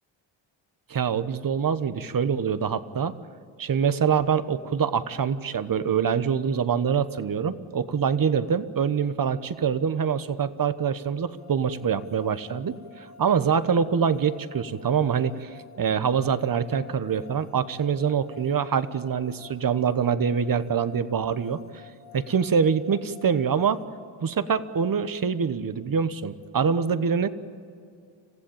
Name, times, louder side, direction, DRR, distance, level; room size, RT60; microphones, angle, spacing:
voice 1, 0.9-3.1 3.6-21.8 22.1-23.8 24.2-27.3, right 7 dB, 45° right, 13 dB, 1.2 m, -25 dB
sound 1, 11.3-23.8, left 6 dB, 75° left, 7.0 m, -50 dB
27.0 x 15.5 x 8.7 m, 2.4 s
cardioid pair, 85°, 49 cm